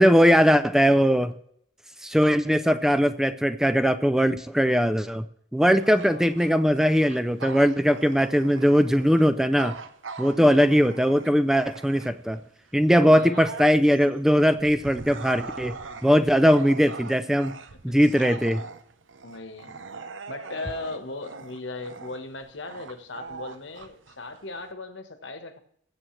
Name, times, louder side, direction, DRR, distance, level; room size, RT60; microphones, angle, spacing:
voice 1, 0.0-1.3 2.0-5.2 5.5-9.8 10.2-12.4 12.7-15.7 16.0-17.5 17.8-18.6, equal, 5° right, 0.3 m, -20 dB
voice 2, 5.7-6.8 8.0-8.5 10.3-10.9 12.9-13.4 16.4-16.7 17.7-18.0 19.2-19.8 20.3-25.6, left 3 dB, 75° left, 1.3 m, -39 dB
Bark / Growling, 5.8-12.4 12.8-24.7, right 4 dB, 85° right, 0.8 m, -41 dB
20.0 x 7.7 x 3.2 m
head